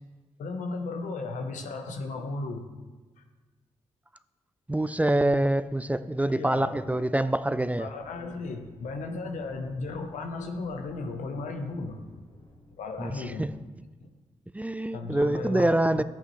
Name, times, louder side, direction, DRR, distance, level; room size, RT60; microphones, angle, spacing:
voice 1, 0.4-2.7 3.2-3.3 6.3-7.3 7.8-12.0 12.8-13.5 14.0-14.1 14.9-16.0, left 3 dB, 85° left, 1.0 m, -35 dB
voice 2, 4.7-7.9 13.0-13.6 14.5-16.0, right 1 dB, 10° right, 0.4 m, -25 dB
sound 1, 5.5-13.9, left 1 dB, 40° left, 2.0 m, -55 dB
11.0 x 8.4 x 3.2 m
supercardioid pair, 50°, 12 cm